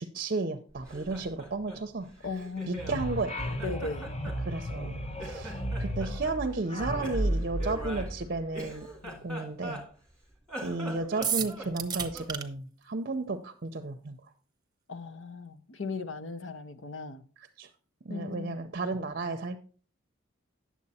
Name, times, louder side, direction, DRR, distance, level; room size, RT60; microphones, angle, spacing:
voice 1, 0.0-2.1 2.7-3.4 4.5-8.9 9.2-9.8 10.6-14.2 17.6-17.7 18.1-19.6, right 3 dB, 45° right, 0.6 m, -33 dB
Laughter, 0.7-3.0 3.4-4.9 5.2-6.4 7.0-10.1 10.4-12.4, right 1 dB, 5° left, 2.4 m, -42 dB
voice 2, 2.2-2.8 3.6-4.1 9.0-9.3 14.9-17.2 18.1-18.6, left 4 dB, 65° left, 0.8 m, -37 dB
sound 1, 2.8-9.0, equal, 30° left, 0.9 m, -34 dB
sound 2, 11.2-12.4, right 8 dB, 20° right, 0.8 m, -31 dB
9.7 x 7.3 x 4.2 m
head